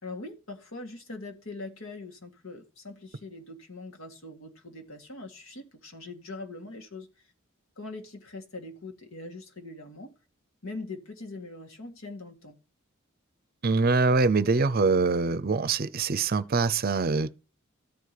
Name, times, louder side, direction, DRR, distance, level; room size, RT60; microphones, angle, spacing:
voice 1, 0.0-7.1 7.8-10.2 10.6-12.6, left 2 dB, 75° left, 2.0 m, -42 dB
voice 2, 13.6-17.3, right 4 dB, 45° right, 0.6 m, -24 dB
13.0 x 4.7 x 8.4 m
head